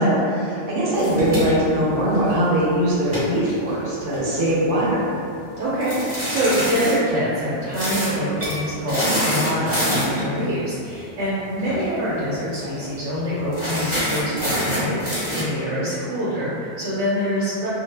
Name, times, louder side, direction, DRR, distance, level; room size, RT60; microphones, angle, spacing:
voice 1, 0.0-5.0, right 1 dB, 60° right, -7 dB, 0.7 m, -21 dB
sound 1, 0.9-2.5 3.0-4.5 5.8-7.0 7.7-8.1 8.4-8.6 8.9-10.3 11.6-11.8 12.1-12.2 12.5-12.9 13.5-15.4, equal, 15° right, 0.9 m, -25 dB
voice 2, 5.6-17.7, equal, 90° right, -9 dB, 0.9 m, -25 dB
2.1 x 2.0 x 3.2 m, 2.5 s
omnidirectional pair, 1.2 m